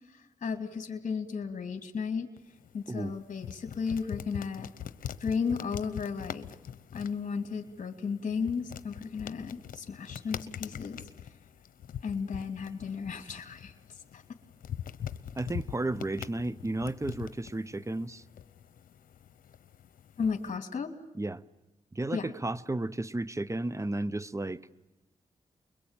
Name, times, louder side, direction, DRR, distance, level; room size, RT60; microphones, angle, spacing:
voice 1, 0.1-2.3 2.7-4.7 5.2-6.5 6.9-11.0 12.0-13.7 14.1-14.2 20.2-20.9 22.1-22.3, left 5 dB, 60° left, 6 dB, 2.8 m, -34 dB
sound 1, 2.4-20.6, left 9 dB, 85° left, 1.0 m, -44 dB
voice 2, 15.4-18.2 21.1-21.4 21.9-24.6, right 2 dB, 20° right, 18 dB, 1.1 m, -33 dB
29.5 x 22.5 x 9.1 m, 0.99 s
cardioid pair, 55°, 14 cm